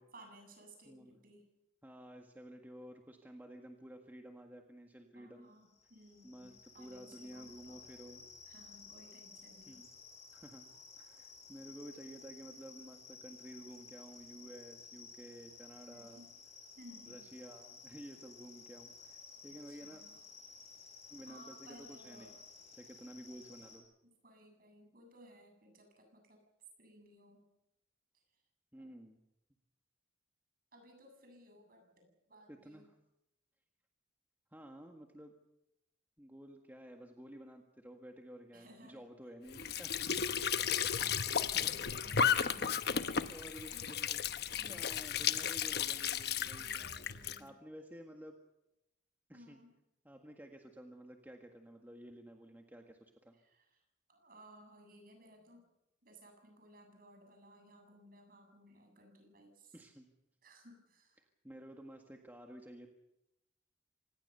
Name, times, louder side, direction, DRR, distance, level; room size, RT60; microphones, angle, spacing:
voice 1, 0.0-1.4 5.1-7.8 8.5-9.8 15.9-16.3 16.8-17.3 19.7-20.2 21.2-22.3 24.0-26.4 26.8-27.5 28.8-28.9 30.7-32.9 38.5-39.0 40.3-42.8 43.7-44.1 44.6-44.8 46.5-47.6 49.3-49.7 53.4-53.8 54.1-55.6 56.0-59.8 60.4-61.2, right 1 dB, 50° right, 4 dB, 7.9 m, -59 dB
voice 2, 1.8-5.5 6.2-8.2 9.7-9.9 10.3-10.7 11.0-16.2 17.1-20.0 21.1-22.4 22.7-23.9 28.7-29.2 32.5-33.0 34.5-35.4 36.2-40.0 41.5-41.8 43.3-44.2 44.6-46.9 47.4-48.3 49.3-49.6 50.1-53.4 59.7-60.1 61.2-62.9, equal, 10° right, 3 dB, 1.7 m, -52 dB
sound 1, 5.6-23.8, left 5 dB, 35° left, 7.3 m, -55 dB
Squeak / Sink (filling or washing) / Trickle dribble, 39.5-47.4, left 7 dB, 55° left, 1.0 m, -34 dB
26.0 x 19.5 x 6.8 m, 0.86 s
head